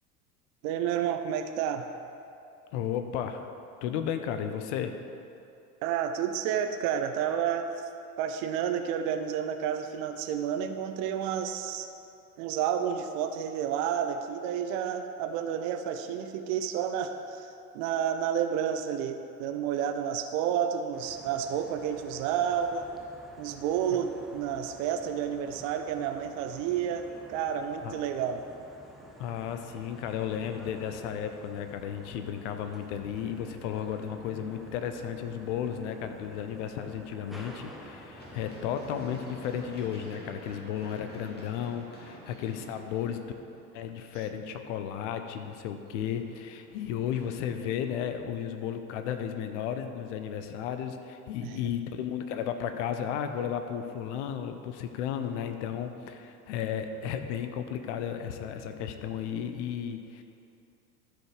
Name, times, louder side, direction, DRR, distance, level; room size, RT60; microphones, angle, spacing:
voice 1, 0.6-1.9 5.8-7.7 8.2-11.9 12.4-17.5 17.7-22.9 23.4-28.4 51.4-51.6, right 8 dB, 40° right, 7 dB, 0.6 m, -30 dB
voice 2, 2.7-3.5 3.8-4.9 27.8-27.9 29.2-43.2 43.7-60.2, left 8 dB, 50° left, 7 dB, 0.8 m, -34 dB
sound 1, 20.9-40.1, equal, ahead, 1.1 m, -50 dB
Run, 38.2-44.0 45.9-47.4, left 1 dB, 20° left, 2.4 m, -49 dB
13.0 x 5.1 x 4.8 m, 2.7 s
figure-of-eight pair, 75°, 47 cm